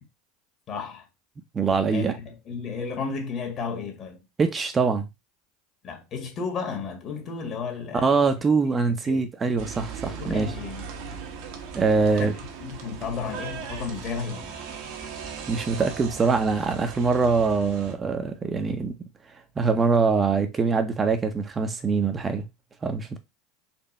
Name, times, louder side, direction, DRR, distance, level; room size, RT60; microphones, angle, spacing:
voice 1, 0.7-1.1 1.9-4.2 5.8-8.2 8.6-9.2 10.1-10.9 12.0-12.3 12.6-14.6, left 5 dB, 45° left, 1.7 m, -33 dB
voice 2, 1.5-2.1 4.4-5.1 8.0-10.5 11.7-12.3 15.5-19.0 19.6-22.5 22.8-23.2, right 4 dB, 25° right, 0.8 m, -23 dB
sound 1, 9.6-17.9, right 6 dB, 65° right, 1.2 m, -38 dB
4.4 x 2.8 x 4.2 m
hypercardioid pair, 85°, 0 cm